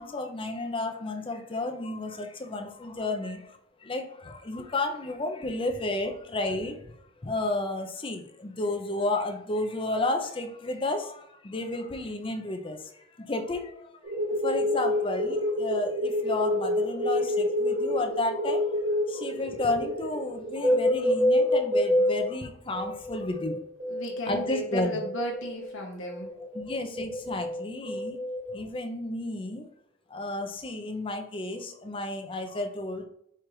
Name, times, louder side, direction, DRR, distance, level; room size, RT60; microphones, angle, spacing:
voice 1, 0.0-3.4 3.9-4.0 4.4-6.7 7.2-11.1 11.4-12.8 13.3-13.7 14.4-15.9 16.2-18.6 19.1-23.6 24.3-25.0 26.6-28.2 28.5-29.6 30.1-33.1, left 2 dB, 25° left, 4 dB, 0.5 m, -31 dB
sound 1, 14.0-22.3 22.7-25.7 26.1-28.5, left 1 dB, 35° right, 1.1 m, -27 dB
voice 2, 23.9-26.3, right 1 dB, 60° left, -1 dB, 0.8 m, -34 dB
4.5 x 2.4 x 4.7 m, 0.73 s
head